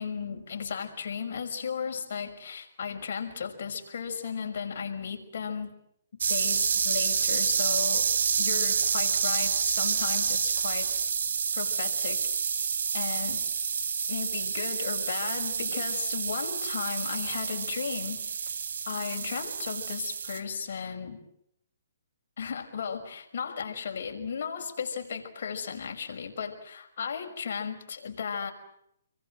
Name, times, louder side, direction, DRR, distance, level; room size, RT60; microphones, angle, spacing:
voice 1, 0.0-5.7 6.3-8.1 8.4-10.9 11.5-12.3 12.9-13.4 14.1-18.2 18.9-21.2 22.4-28.5, left 6 dB, 60° left, 3 dB, 5.7 m, -35 dB
sound 1, 6.2-20.4, right 6 dB, 70° right, 3.1 m, -28 dB
29.0 x 23.0 x 7.9 m, 0.75 s
hypercardioid pair, 150°, 0 cm